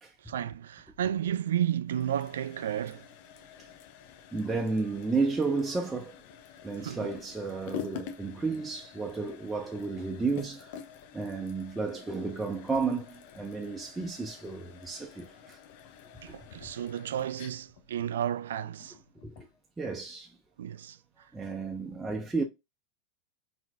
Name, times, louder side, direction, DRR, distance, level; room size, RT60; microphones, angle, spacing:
voice 1, 0.2-3.1 6.8-7.1 16.2-19.0 20.6-21.0, right 10 dB, 60° right, 0.3 m, -32 dB
sound 1, 1.9-19.6, left 9 dB, 50° left, 0.8 m, -48 dB
voice 2, 4.3-6.2 6.6-10.8 11.1-15.6 16.3-16.4 19.2-19.5 19.8-20.3 21.3-22.4, right 4 dB, 10° right, 0.6 m, -32 dB
5.6 x 2.6 x 2.2 m
figure-of-eight pair, 90°, 0 cm